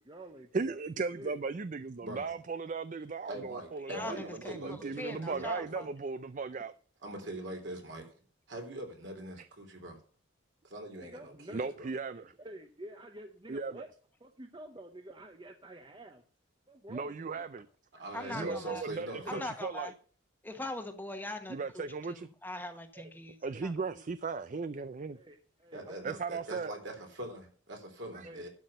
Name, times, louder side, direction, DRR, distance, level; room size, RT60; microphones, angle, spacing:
voice 1, 0.0-0.9 1.2-1.4 11.0-11.7 12.2-13.9 14.2-16.2 16.7-17.4 18.3-18.5 19.1-19.4 22.9-23.1 23.4-23.6 23.9-24.0 25.1-26.1 28.2-28.4, right 1 dB, 25° right, 0.8 m, -49 dB
voice 2, 0.5-6.7 9.4-9.5 11.5-12.3 13.5-13.8 16.9-17.7 18.3-19.9 21.5-22.3 23.4-25.2 26.0-26.7 28.1-28.3, right 4 dB, 40° right, 0.4 m, -37 dB
voice 3, 3.2-5.9 7.0-8.1 8.5-10.0 10.6-11.9 17.9-19.5 25.7-28.5, right 1 dB, 65° right, 3.5 m, -43 dB
voice 4, 3.8-5.9 18.1-18.8 19.3-19.9 20.4-23.7, left 2 dB, 10° left, 1.1 m, -42 dB
12.0 x 6.1 x 6.5 m
head